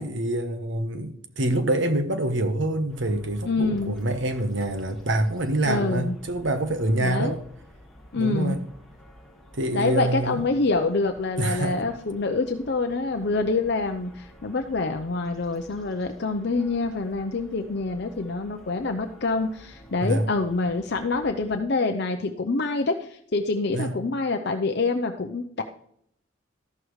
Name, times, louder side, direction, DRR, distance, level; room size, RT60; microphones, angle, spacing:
voice 1, 0.0-7.4 8.1-8.7 9.5-10.4 11.4-11.8 20.0-20.3 23.7-23.9, right 1 dB, 60° right, 1.1 m, -26 dB
sound 1, 2.9-21.6, equal, ahead, 2.0 m, -51 dB
voice 2, 3.4-4.0 5.6-6.1 7.0-7.3 8.1-8.6 9.7-25.6, left 3 dB, 50° left, 0.6 m, -26 dB
13.5 x 11.5 x 3.2 m
head